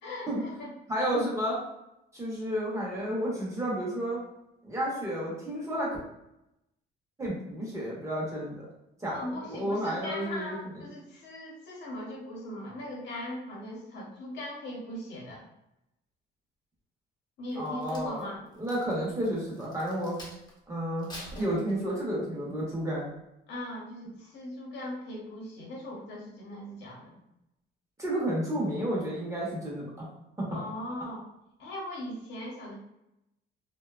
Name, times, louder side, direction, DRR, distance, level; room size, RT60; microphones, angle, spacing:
voice 1, 0.0-0.7 9.1-15.4 17.4-18.4 23.5-27.3 30.5-31.2 31.6-32.8, left 1 dB, 65° left, -3 dB, 0.9 m, -39 dB
voice 2, 0.9-1.6 2.1-4.2 4.6-6.0 7.2-8.7 9.0-9.2 9.5-10.6 17.6-18.3 18.6-20.2 20.7-23.1 28.0-30.1 30.4-30.6, equal, 15° right, -5 dB, 0.7 m, -31 dB
Crack, 17.5-20.6 21.0-22.2 22.7-23.0, left 1 dB, 20° left, 0.7 m, -47 dB
2.6 x 2.2 x 2.3 m, 0.85 s
cardioid pair, 145°, 20 cm